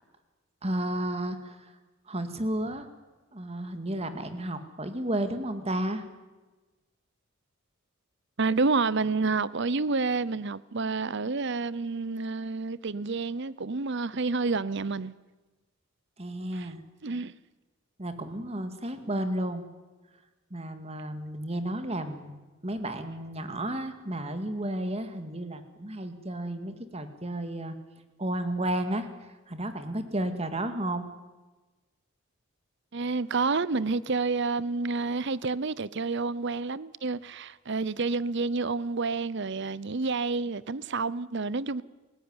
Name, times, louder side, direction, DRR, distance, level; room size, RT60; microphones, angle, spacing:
voice 1, 0.6-1.7 2.1-2.9 3.3-6.0 16.2-16.8 18.0-19.6 20.5-22.3 22.6-27.8 28.2-29.1 29.5-31.0, right 1 dB, 30° right, 2.2 m, -32 dB
voice 2, 8.4-15.1 16.5-16.7 17.0-17.3 32.9-41.8, right 4 dB, 55° right, 0.8 m, -29 dB
29.0 x 16.5 x 9.8 m
head